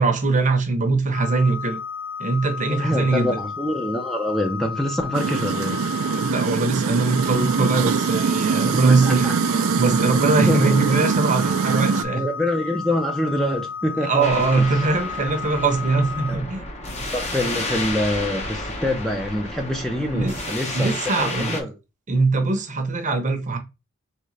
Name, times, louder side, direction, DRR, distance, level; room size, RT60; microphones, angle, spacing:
voice 1, 0.0-1.8 2.2-3.3 6.1-9.3 9.8-12.3 14.0-16.6 20.1-20.3 20.7-21.6 22.1-23.6, right 3 dB, 35° right, 0.7 m, -21 dB
sound 1, 1.1-16.4, left 6 dB, 60° left, 1.2 m, -33 dB
voice 2, 2.7-6.2 8.7-9.3 10.4-10.8 12.1-14.7 16.3-16.4 17.1-21.7, left 1 dB, ahead, 0.4 m, -26 dB
sound 2, 5.1-12.0, right 6 dB, 65° right, 0.4 m, -23 dB
sound 3, 14.2-21.6, left 2 dB, 30° left, 0.7 m, -31 dB
3.7 x 3.2 x 3.2 m
head